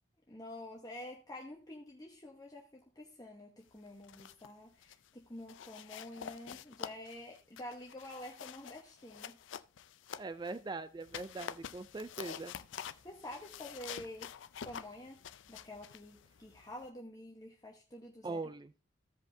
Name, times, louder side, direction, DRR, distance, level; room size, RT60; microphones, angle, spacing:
voice 1, 0.3-9.4 13.0-14.3 14.6-18.4, left 1 dB, 20° left, -1 dB, 1.0 m, -48 dB
sound 1, 3.9-4.5 4.8-5.1 5.5-10.6 11.0-16.9, left 8 dB, 70° left, 0.4 m, -48 dB
voice 2, 10.2-12.5 18.2-18.7, right 3 dB, 20° right, 13 dB, 0.3 m, -41 dB
15.5 x 5.2 x 2.7 m, 0.34 s
head